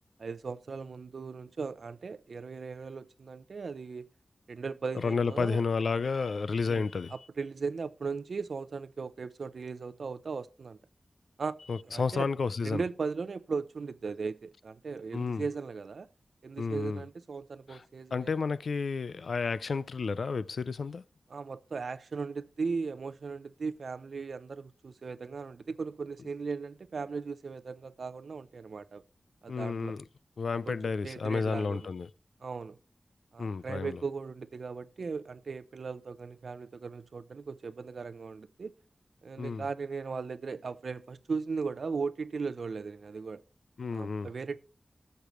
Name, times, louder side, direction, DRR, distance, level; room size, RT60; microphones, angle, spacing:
voice 1, 0.2-4.1 4.5-5.6 6.7-10.8 11.4-11.6 11.9-12.3 12.6-16.1 16.4-18.3 21.3-29.0 29.4-30.0 30.7-31.9 32.4-32.8 33.3-38.7 39.2-43.4 43.9-44.6, right 4 dB, 80° right, 0.5 m, -37 dB
voice 2, 4.9-7.1 11.7-12.8 15.1-15.4 16.6-17.0 17.7-17.8 18.1-21.0 29.5-30.0 30.4-32.1 33.4-34.0 39.4-39.6 43.8-44.3, left 4 dB, 85° left, 0.4 m, -31 dB
18.5 x 6.7 x 3.1 m
wide cardioid pair, 100°, 0 cm